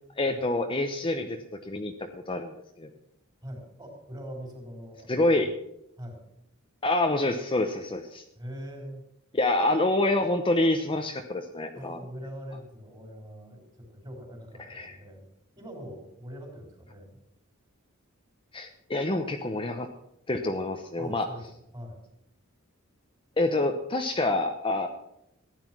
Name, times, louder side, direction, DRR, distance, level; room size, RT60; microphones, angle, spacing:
voice 1, 0.2-2.9 5.1-5.5 6.8-8.2 9.3-12.0 14.6-15.0 18.5-19.9 20.3-21.3 23.4-24.9, left 2 dB, 25° left, 5 dB, 0.9 m, -27 dB
voice 2, 3.4-5.5 6.0-6.2 8.4-9.1 11.7-15.2 15.6-17.2 21.0-21.5 21.7-22.0, equal, 20° right, 2 dB, 4.3 m, -42 dB
15.0 x 10.5 x 6.1 m, 0.81 s
head